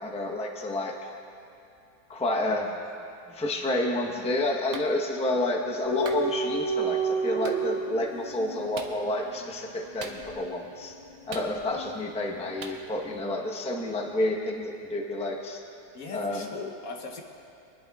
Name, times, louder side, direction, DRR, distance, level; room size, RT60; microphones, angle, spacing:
voice 1, 0.0-0.9 2.1-2.8 3.3-10.9 11.3-15.6 16.1-16.5, left 1 dB, 5° left, 0 dB, 0.7 m, -29 dB
Clapping, 4.7-4.9 6.0-6.3 7.4-7.6 8.7-9.0 10.0-10.5 11.3-11.9 12.6-12.8, right 4 dB, 55° right, 1.1 m, -40 dB
sound 1, 5.8-12.6 12.9-13.1, right 4 dB, 35° left, 1.4 m, -32 dB
voice 2, 15.9-17.2, left 4 dB, 65° left, 2 dB, 1.3 m, -39 dB
24.5 x 11.0 x 2.4 m, 2.7 s
omnidirectional pair, 1.7 m